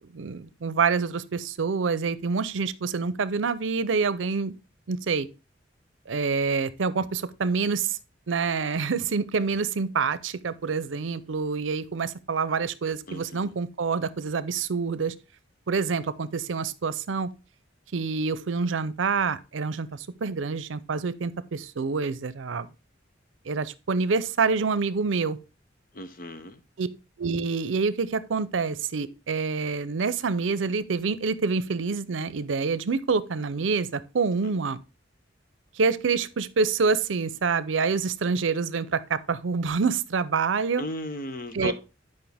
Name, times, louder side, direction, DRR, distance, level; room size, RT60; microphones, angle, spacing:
voice 1, 0.1-4.6 4.9-5.3 6.1-8.0 8.3-15.1 15.7-17.3 17.9-22.7 23.5-25.4 26.8-26.9 27.2-34.8 35.8-40.8 41.5-41.7, right 5 dB, 85° right, 0.6 m, -27 dB
voice 2, 13.1-13.5 25.9-26.6 34.4-34.6 40.8-41.7, left 1 dB, 45° left, 0.8 m, -35 dB
9.4 x 5.3 x 3.4 m
head